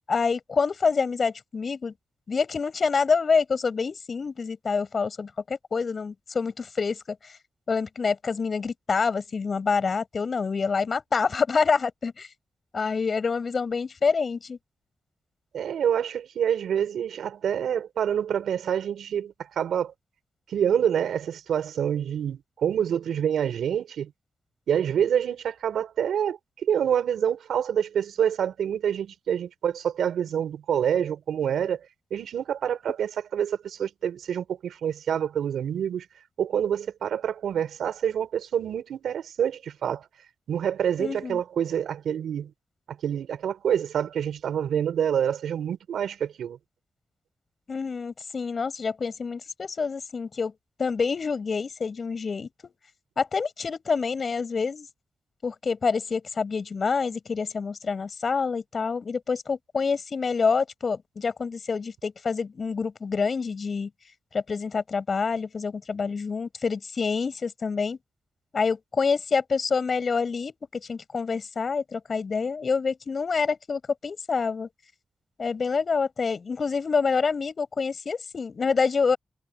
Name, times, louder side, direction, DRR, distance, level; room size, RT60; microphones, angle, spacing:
voice 1, 0.1-1.9 2.3-7.2 7.7-12.3 12.7-14.6 41.0-41.4 47.7-50.5 50.8-52.7 53.2-54.9 55.4-63.9 64.3-68.0 68.5-74.7 75.4-79.2, left 5 dB, 60° left, 7.6 m, -27 dB
voice 2, 15.5-19.9 20.5-24.1 24.7-31.8 32.1-36.1 36.4-40.0 40.5-42.5 42.9-46.6, right 9 dB, 90° right, 5.4 m, -27 dB
cardioid pair, 50°, 0 cm